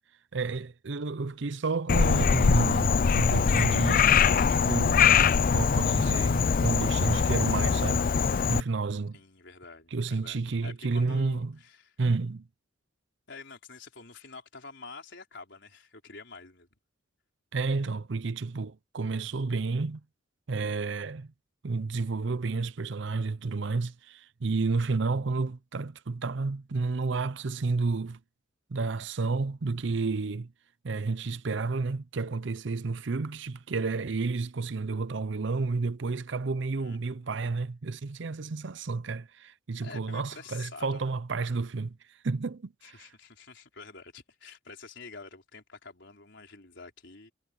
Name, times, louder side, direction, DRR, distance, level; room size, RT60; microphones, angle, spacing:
voice 1, 0.3-4.1 4.5-5.2 5.5-8.0 8.5-9.2 9.9-11.6 12.0-12.5 17.5-20.0 20.5-21.3 21.6-28.2 28.7-30.5 30.8-42.0 42.2-43.1, right 3 dB, 60° right, 0.6 m, -31 dB
Frog, 1.9-8.6, left 6 dB, 45° left, 0.4 m, -23 dB
voice 2, 9.1-11.9 13.3-16.7 36.7-37.3 39.8-41.2 42.8-47.3, left 4 dB, 60° left, 5.0 m, -48 dB
head